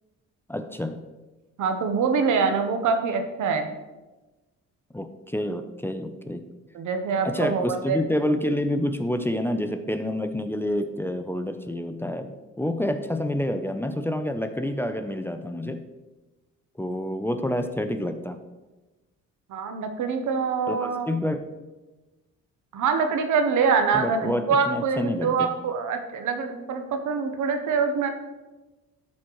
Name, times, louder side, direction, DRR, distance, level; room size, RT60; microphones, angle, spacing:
voice 1, 0.5-1.1 4.9-6.4 7.2-15.8 16.8-18.4 20.7-21.4 23.9-25.5, left 1 dB, 10° left, 7 dB, 0.5 m, -28 dB
voice 2, 1.6-3.7 6.7-8.0 19.5-21.1 22.7-28.1, right 5 dB, 75° right, 6 dB, 1.0 m, -24 dB
12.5 x 4.3 x 3.1 m, 1.1 s
cardioid pair, 90°, 30 cm